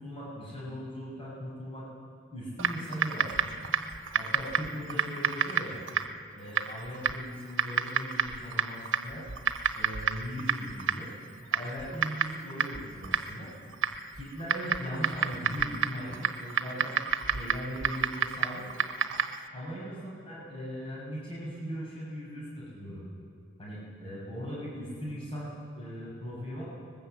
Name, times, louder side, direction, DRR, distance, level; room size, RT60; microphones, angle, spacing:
voice 1, 0.0-1.9 2.3-3.5 4.1-5.8 6.3-9.3 9.7-11.1 11.5-13.5 14.1-17.0 17.3-18.7 19.5-23.0 23.6-26.6, equal, 30° left, -7 dB, 6.3 m, -39 dB
Typing, 2.6-19.5, right 6 dB, 85° right, 1.1 m, -31 dB
21.0 x 19.5 x 7.9 m, 2.3 s
head